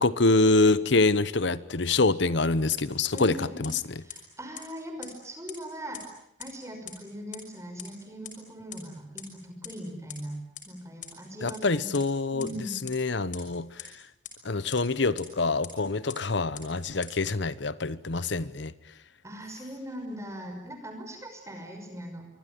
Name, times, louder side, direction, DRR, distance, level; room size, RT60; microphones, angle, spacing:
voice 1, 0.0-4.0 11.4-12.5 12.8-14.0 14.4-18.7, left 3 dB, 65° left, 17 dB, 1.0 m, -25 dB
sound 1, 2.7-2.8 3.2-3.3 3.6-3.7 4.1-4.2 4.5-4.6 5.0-5.1 5.5-5.6 5.9-6.0 6.4-6.5 6.9-7.0 7.3-7.4 7.8-7.9 8.2-8.3 8.7-8.8 9.2-9.3 9.6-9.7 10.1-10.2 10.5-10.6 11.0-11.1 11.5-11.6 11.9-12.0 12.4-12.5 12.9-13.0 13.3-13.4 13.8-13.9 14.2-14.3 14.7-14.8 15.2-15.3 15.6-15.7 16.1-16.2 16.5-16.6 17.0-17.1, left 12 dB, 40° left, 5.9 m, -39 dB
voice 2, 3.1-3.7 4.0-6.0 6.4-10.4 10.6-11.9 12.3-12.8 19.2-22.3, equal, 15° right, 5 dB, 5.9 m, -40 dB
26.0 x 24.0 x 9.4 m, 0.80 s
head